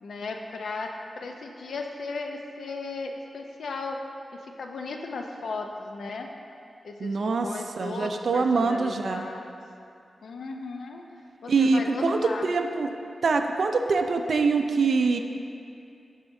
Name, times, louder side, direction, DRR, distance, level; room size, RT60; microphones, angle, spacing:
voice 1, 0.0-4.0 4.3-6.3 6.8-9.5 10.2-11.0 11.4-12.5, left 3 dB, 85° left, 3 dB, 0.5 m, -36 dB
voice 2, 7.0-7.5 7.8-9.3 11.5-12.9 13.2-15.2, right 4 dB, 65° right, 5 dB, 0.5 m, -24 dB
12.5 x 5.0 x 2.6 m, 2.6 s
wide cardioid pair, 95°, 0 cm